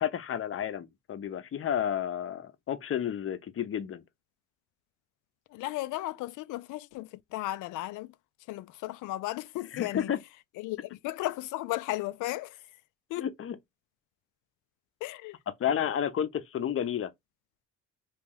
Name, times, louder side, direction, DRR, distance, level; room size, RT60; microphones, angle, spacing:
voice 1, 0.0-4.0 9.7-10.2 13.2-13.6 15.6-17.1, left 9 dB, 45° left, 0.7 m, -31 dB
voice 2, 5.5-8.1 8.5-10.1 10.6-12.6 13.1-13.3 15.0-15.4, left 16 dB, 85° left, 0.5 m, -35 dB
3.0 x 2.4 x 3.6 m
cardioid pair, 90°, 30 cm